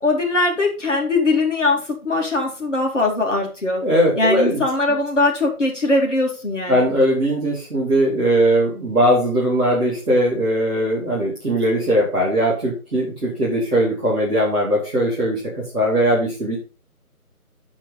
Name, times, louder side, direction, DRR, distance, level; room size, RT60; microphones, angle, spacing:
voice 1, 0.0-3.8 4.2-6.9, left 2 dB, 50° left, 0 dB, 2.7 m, -21 dB
voice 2, 3.8-4.6 6.7-16.5, equal, 5° right, -13 dB, 1.6 m, -19 dB
13.0 x 4.5 x 3.9 m, 0.33 s
figure-of-eight pair, 160°, 45 cm